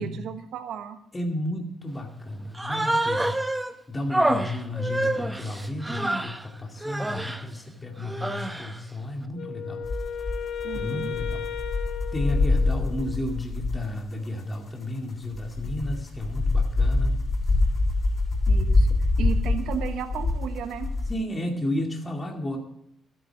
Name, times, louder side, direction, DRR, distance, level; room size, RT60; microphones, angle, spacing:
voice 1, 0.0-1.0 10.6-11.1 18.5-18.9 19.2-20.9, right 8 dB, 80° right, 8 dB, 1.2 m, -34 dB
voice 2, 1.1-3.3 3.9-9.8 10.7-11.4 12.1-17.2 21.1-22.6, left 1 dB, 20° left, 1 dB, 2.3 m, -32 dB
Human voice, 2.5-3.7 4.1-6.4 6.8-7.4 8.0-8.8, right 1 dB, 10° right, 1.0 m, -27 dB
Wind instrument woodwind instrument, 9.3-13.2, left 8 dB, 70° left, 0.8 m, -35 dB
sound 1, 9.8-14.1 14.5-14.6 15.1-21.1, left 2 dB, 40° left, 6.2 m, -25 dB
13.0 x 9.4 x 6.3 m, 0.78 s
cardioid pair, 90°, 0 cm